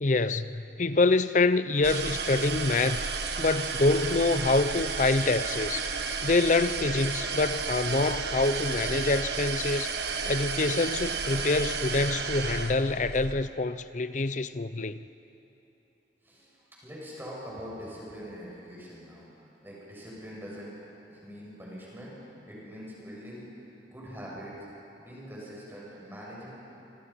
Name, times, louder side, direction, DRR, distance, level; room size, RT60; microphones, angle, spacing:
voice 1, 0.0-3.1 3.4-5.8 6.2-9.9 10.3-15.0, left 3 dB, 40° left, 13 dB, 0.6 m, -26 dB
sound 1, 1.8-13.3, right 4 dB, 65° right, 1.5 m, -32 dB
voice 2, 16.2-22.1 22.5-23.6 23.9-24.7 25.0-26.5, equal, 10° right, -5 dB, 7.0 m, -43 dB
26.0 x 25.5 x 5.8 m, 2.9 s
head